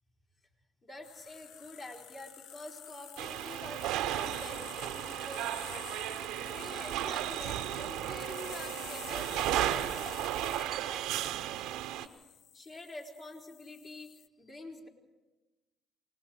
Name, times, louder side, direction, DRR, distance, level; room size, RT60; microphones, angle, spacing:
voice 1, 0.8-12.1 12.5-14.1 14.4-14.9, left 2 dB, 45° left, -1 dB, 4.6 m, -47 dB
sound 1, 1.0-14.3, left 9 dB, 70° left, 0.6 m, -49 dB
sound 2, 3.2-12.1, right 13 dB, 75° right, 0.8 m, -34 dB
28.5 x 19.0 x 4.8 m, 1.1 s
hypercardioid pair, 60°, 0 cm